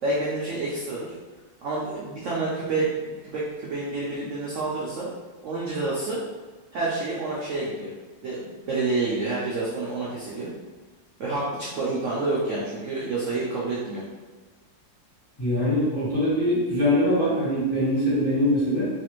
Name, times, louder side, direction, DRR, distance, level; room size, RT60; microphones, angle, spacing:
voice 1, 0.0-1.1 1.6-5.1 5.4-6.2 6.7-7.9 8.2-10.5 11.2-14.0, right 3 dB, 75° right, -6 dB, 0.7 m, -28 dB
voice 2, 15.4-18.9, equal, 20° left, -11 dB, 0.7 m, -23 dB
3.2 x 2.5 x 3.0 m, 1.3 s
omnidirectional pair, 2.0 m